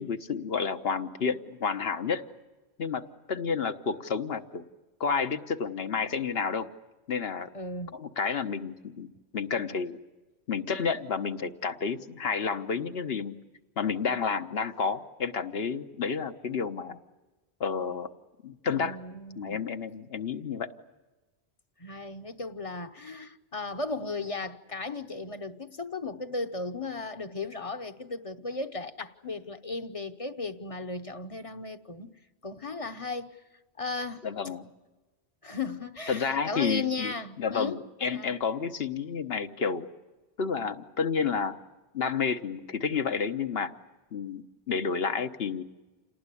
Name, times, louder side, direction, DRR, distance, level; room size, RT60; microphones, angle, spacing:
voice 1, 0.0-2.2 2.8-3.0 3.3-4.7 5.0-6.7 7.1-7.5 7.9-10.0 10.5-13.4 13.8-17.0 17.6-18.1 18.4-19.0 19.4-20.7 34.2-34.6 36.1-39.9 40.4-41.6 41.9-43.7 44.1-45.6, left 5 dB, 70° left, 1.3 m, -30 dB
voice 2, 7.5-7.9 18.7-19.6 21.8-32.1 32.4-33.4 33.8-34.3 35.4-37.8 38.1-38.3, left 3 dB, 35° left, 1.0 m, -36 dB
28.0 x 19.0 x 9.9 m
omnidirectional pair, 1.1 m